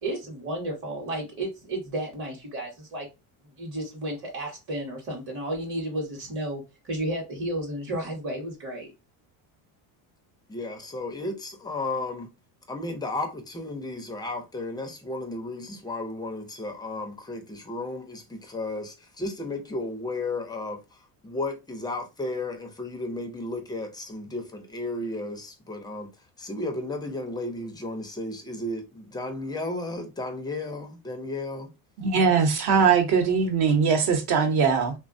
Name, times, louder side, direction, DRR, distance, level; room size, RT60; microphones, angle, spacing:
voice 1, 0.0-3.1 3.6-8.9, right 1 dB, 30° right, 0.8 m, -32 dB
voice 2, 10.5-12.3 12.7-20.8 21.2-26.1 26.4-31.7, left 2 dB, 10° left, 0.3 m, -33 dB
voice 3, 32.0-34.9, right 6 dB, 60° right, 0.8 m, -21 dB
3.3 x 2.1 x 2.5 m
cardioid pair, 135°, 44 cm